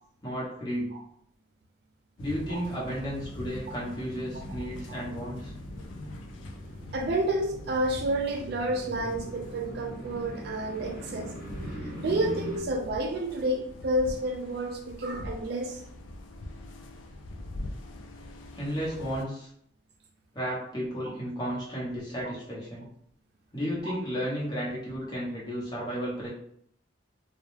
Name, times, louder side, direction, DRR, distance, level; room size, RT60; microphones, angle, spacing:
voice 1, 0.2-0.9 2.2-5.5 18.5-19.5 20.3-22.9 23.5-26.3, equal, 20° left, -6 dB, 0.8 m, -33 dB
sound 1, 2.2-19.2, left 1 dB, 75° left, 0.3 m, -43 dB
sound 2, 2.8-12.6, equal, 45° left, 1.1 m, -43 dB
voice 2, 6.9-11.3 11.8-15.8 23.8-23.9, right 1 dB, 55° right, 2 dB, 0.3 m, -30 dB
2.3 x 2.0 x 3.0 m, 0.68 s
head